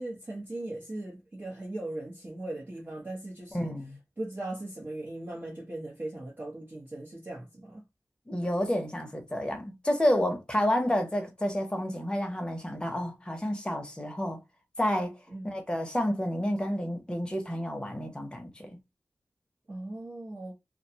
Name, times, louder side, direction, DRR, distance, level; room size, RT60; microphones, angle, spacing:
voice 1, 0.0-3.7 4.2-7.8 15.3-15.4 19.7-20.5, right 2 dB, 40° right, 0.8 m, -38 dB
voice 2, 3.5-4.0 8.3-14.4 14.8-15.2 15.4-18.8, equal, 15° left, 0.8 m, -30 dB
2.4 x 2.2 x 2.7 m
wide cardioid pair, 85°, 6 cm